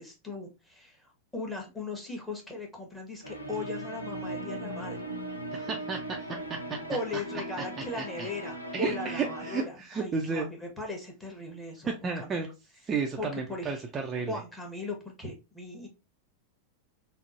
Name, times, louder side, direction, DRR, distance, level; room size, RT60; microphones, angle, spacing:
voice 1, 0.0-5.0 6.9-12.5 13.2-13.8 14.3-15.9, left 2 dB, 10° left, 1.0 m, -38 dB
sound 1, 3.2-9.6, right 1 dB, 85° left, 0.5 m, -38 dB
voice 2, 5.5-6.2 6.5-6.8 8.0-8.3 8.7-10.5 11.8-12.5 12.9-14.4, right 5 dB, 20° right, 0.5 m, -32 dB
3.6 x 2.0 x 2.4 m
figure-of-eight pair, 90°, 0 cm